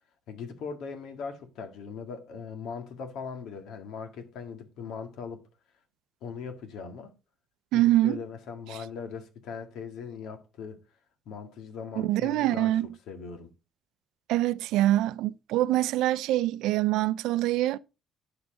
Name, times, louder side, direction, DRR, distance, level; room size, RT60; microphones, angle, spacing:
voice 1, 0.3-5.4 6.2-7.1 7.7-10.8 11.3-12.8 13.1-13.5, left 5 dB, 70° left, 1.8 m, -40 dB
voice 2, 7.7-8.2 12.0-12.9 14.3-17.8, right 15 dB, 90° right, 0.4 m, -24 dB
9.7 x 7.0 x 3.8 m
cardioid pair, 160°, 0 cm